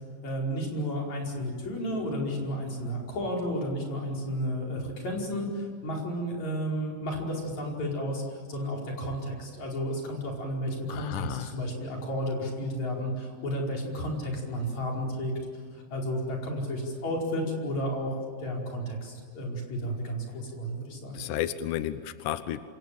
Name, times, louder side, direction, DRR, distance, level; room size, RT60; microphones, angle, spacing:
voice 1, 0.2-8.2 8.5-15.3 15.7-18.1 18.4-21.2, equal, 45° left, -1 dB, 6.2 m, -32 dB
voice 2, 10.9-11.5 21.1-22.6, left 12 dB, 75° left, 12 dB, 1.9 m, -32 dB
27.5 x 27.0 x 7.7 m, 2.1 s
omnidirectional pair, 4.6 m